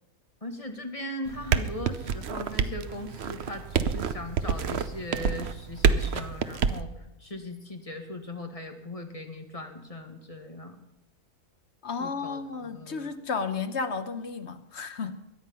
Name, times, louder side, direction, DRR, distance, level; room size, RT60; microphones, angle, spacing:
voice 1, 0.4-6.9 7.2-10.8 12.0-13.1, left 1 dB, 25° left, 1.7 m, -39 dB
sound 1, 1.3-6.8, right 6 dB, 55° right, 0.9 m, -27 dB
voice 2, 11.8-15.2, left 5 dB, 55° left, 1.2 m, -33 dB
22.5 x 9.6 x 5.6 m
omnidirectional pair, 1.5 m